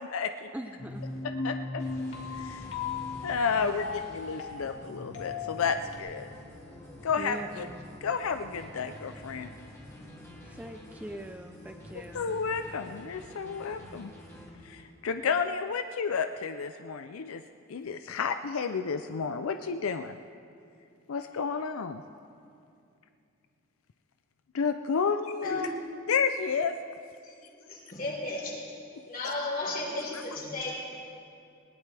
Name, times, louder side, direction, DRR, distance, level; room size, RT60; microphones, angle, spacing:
voice 1, 0.0-0.5 1.2-1.8 2.4-2.7 3.2-6.3 7.0-7.7 8.0-9.5 12.1-14.1 14.6-17.4 17.7-20.2 21.1-22.0 24.5-25.7 26.1-26.7 29.2-29.3, left 5 dB, 85° left, 8 dB, 0.5 m, -31 dB
voice 2, 0.5-1.0 3.6-4.0 7.2-7.8 10.4-12.3, right 1 dB, 5° right, 5 dB, 0.5 m, -42 dB
sound 1, 0.8-6.0, left 4 dB, 65° left, 2.1 m, -37 dB
sound 2, 0.9-1.2 1.8-14.8, left 1 dB, 15° left, 2.7 m, -48 dB
voice 3, 27.2-28.6 29.0-30.7, left 2 dB, 45° left, -3 dB, 3.9 m, -35 dB
20.0 x 18.0 x 3.4 m, 2.5 s
head